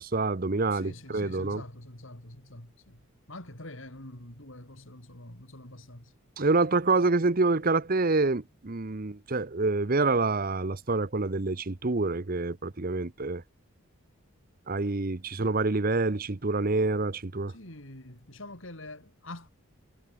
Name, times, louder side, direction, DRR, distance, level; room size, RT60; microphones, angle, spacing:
voice 1, 0.0-1.6 6.4-13.4 14.7-17.5, right 3 dB, 40° right, 0.9 m, -27 dB
voice 2, 0.7-3.0 3.3-6.1 17.5-19.5, left 1 dB, 60° left, 4.8 m, -45 dB
head